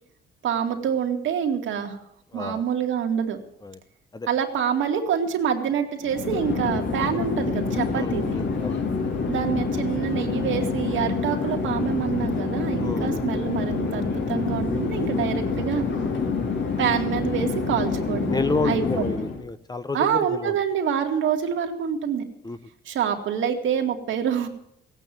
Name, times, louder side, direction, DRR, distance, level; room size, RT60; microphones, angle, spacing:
voice 1, 0.4-2.0 2.3-3.4 4.3-8.4 9.3-15.9 16.8-19.1 19.9-22.2 22.9-24.5, right 8 dB, 75° right, 4 dB, 2.4 m, -26 dB
voice 2, 2.3-2.6 3.6-3.8 4.1-4.3 7.9-8.8 12.8-13.2 16.2-16.4 18.3-20.6 22.4-22.6, left 3 dB, 20° left, 13 dB, 0.9 m, -30 dB
Chatter / Fixed-wing aircraft airplane, 6.0-19.4, left 4 dB, 65° left, 3.5 m, -27 dB
17.0 x 9.0 x 9.3 m, 0.74 s
cardioid pair, 90°, 20 cm